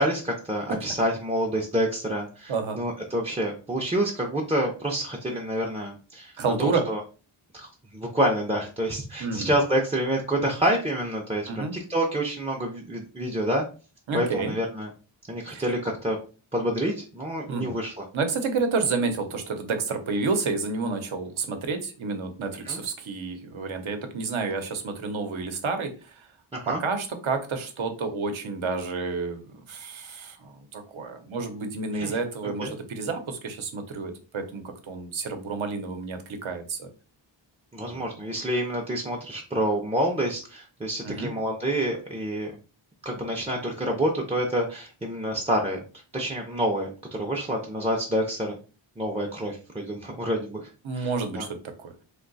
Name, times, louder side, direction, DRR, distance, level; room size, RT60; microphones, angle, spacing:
voice 1, 0.0-6.3 6.6-7.0 7.5-13.7 14.1-14.9 15.3-16.2 16.5-18.0 22.6-22.8 26.5-26.8 31.9-32.2 32.4-32.7 37.7-42.6 43.0-45.8 46.1-46.9 47.2-48.6 49.0-50.7 50.9-51.1 51.4-51.5, right 1 dB, 15° right, -2 dB, 0.4 m, -28 dB
voice 2, 2.5-2.8 6.4-6.9 9.2-9.5 11.5-11.8 14.1-14.6 15.5-15.6 17.5-17.8 18.1-26.3 26.7-36.9 37.8-38.0 41.0-41.3 50.8-51.9, right 4 dB, 80° right, 6 dB, 0.8 m, -30 dB
2.7 x 2.2 x 3.8 m, 0.35 s
wide cardioid pair, 140°, 48 cm